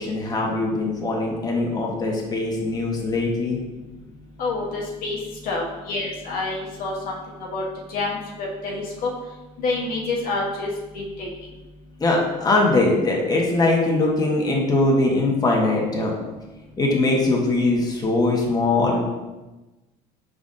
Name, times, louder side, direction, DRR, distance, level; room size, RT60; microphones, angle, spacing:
voice 1, 0.0-3.6 12.0-16.1 16.8-19.0, left 2 dB, 25° left, -2 dB, 1.1 m, -21 dB
voice 2, 4.4-5.2 5.4-7.6 7.9-9.1 9.6-11.3, left 3 dB, 60° left, -2 dB, 1.0 m, -28 dB
5.0 x 3.8 x 2.6 m, 1.1 s
supercardioid pair, 85°, 16 cm